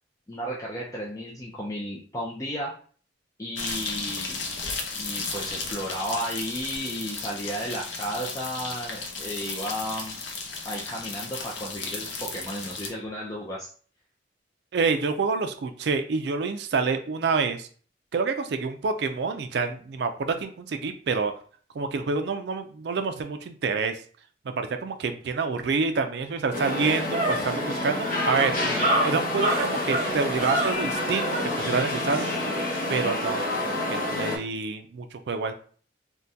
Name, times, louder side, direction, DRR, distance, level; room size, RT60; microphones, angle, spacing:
voice 1, 0.3-2.7 3.4-4.4 4.9-10.2 10.6-13.7 28.7-28.9, equal, 20° left, -4 dB, 0.4 m, -33 dB
sound 1, 3.6-12.9, left 4 dB, 80° left, 0.6 m, -34 dB
voice 2, 14.7-17.7 18.1-21.3 21.7-24.0 24.5-28.6 29.0-32.3 32.9-35.5, right 4 dB, 65° right, 7 dB, 0.4 m, -27 dB
sound 2, 26.0-26.1 26.5-31.5, right 1 dB, 35° right, 0.8 m, -28 dB
sound 3, 26.5-34.4, left 1 dB, 50° left, 0.7 m, -28 dB
3.5 x 2.2 x 2.7 m, 0.44 s
head